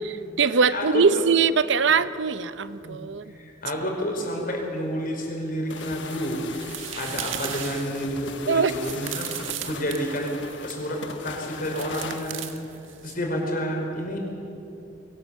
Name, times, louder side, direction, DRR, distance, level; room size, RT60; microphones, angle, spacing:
voice 1, 0.0-3.3 8.5-8.7, right 5 dB, 65° right, 14 dB, 0.6 m, -22 dB
voice 2, 0.7-1.0 2.8-3.0 3.3-6.4 6.9-12.5 13.0-14.2, equal, 45° left, 0 dB, 5.0 m, -30 dB
sound 1, 5.7-12.3, left 5 dB, 65° left, 1.2 m, -40 dB
sound 2, 5.8-10.9 11.7-13.1, right 9 dB, 85° right, 1.6 m, -37 dB
23.0 x 17.5 x 8.4 m, 2.8 s
head